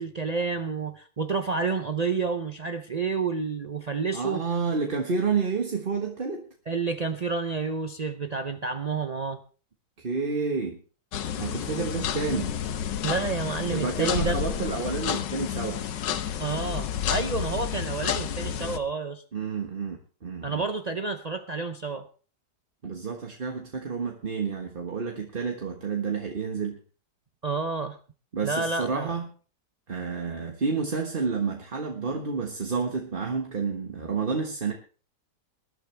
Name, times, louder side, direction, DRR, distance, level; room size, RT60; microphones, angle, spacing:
voice 1, 0.0-4.4 6.7-9.4 13.0-14.5 16.4-19.2 20.4-22.1 27.4-28.0 28.4-29.1, right 4 dB, 85° right, 8 dB, 0.3 m, -29 dB
voice 2, 4.1-6.4 10.0-10.8 11.4-12.6 13.7-15.8 19.3-20.6 22.8-26.8 28.3-29.3 29.9-34.7, right 5 dB, 30° right, 2 dB, 1.5 m, -30 dB
sound 1, 11.1-18.8, left 9 dB, 85° left, 1.6 m, -30 dB
21.0 x 12.0 x 3.4 m, 0.38 s
omnidirectional pair, 1.9 m